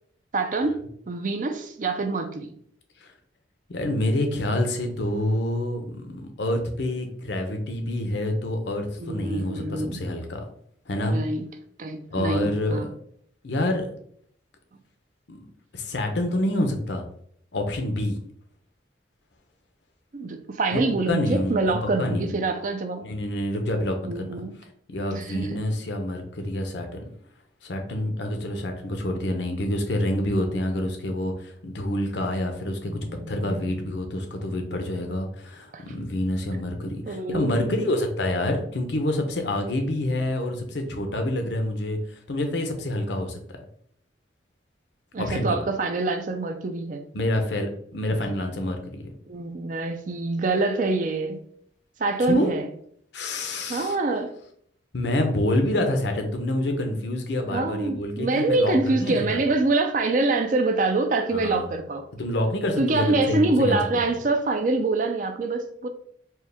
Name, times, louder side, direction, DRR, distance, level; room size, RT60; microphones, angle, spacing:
voice 1, 0.3-0.8 1.1-2.5 9.0-10.0 11.0-11.5 11.8-12.9 20.1-23.1 24.1-24.6 25.1-25.6 32.8-33.7 35.7-35.8 36.8-37.8 45.1-47.0 49.3-51.4 52.0-52.7 53.7-54.3 57.5-62.1 62.8-65.9, right 3 dB, 40° right, 0.4 m, -25 dB
voice 2, 3.7-10.4 10.9-11.2 12.1-12.9 13.4-13.9 15.3-15.4 15.7-17.0 17.5-18.2 20.7-20.8 21.1-22.3 23.0-24.4 24.9-27.0 27.6-43.4 45.2-45.6 47.1-49.1 52.3-52.5 53.1-54.0 54.9-59.3 61.3-61.6 62.1-63.8, left 1 dB, 65° left, 0.7 m, -27 dB
4.5 x 2.3 x 3.4 m
head